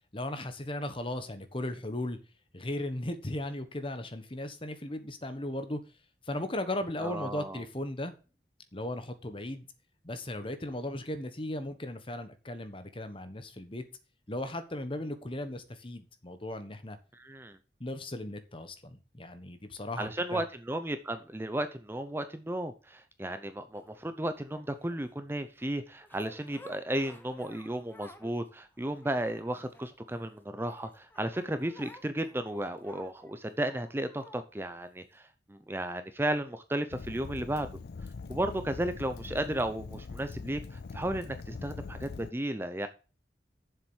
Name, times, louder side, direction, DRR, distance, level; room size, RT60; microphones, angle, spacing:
voice 1, 0.1-2.2 2.5-5.8 6.2-8.1 8.7-9.7 10.0-13.8 14.3-17.0 17.8-20.4, left 1 dB, 30° left, 9 dB, 1.3 m, -37 dB
voice 2, 7.0-7.6 17.1-17.6 20.0-37.7 38.3-42.9, right 1 dB, 15° right, 10 dB, 0.6 m, -34 dB
sound 1, 23.7-25.1 26.0-28.4 28.7-30.2 30.6-34.5 35.1-35.2, left 1 dB, 10° left, 1.1 m, -54 dB
Fire, 36.9-42.3, left 4 dB, 60° left, 0.4 m, -42 dB
7.5 x 7.3 x 6.3 m, 0.34 s
head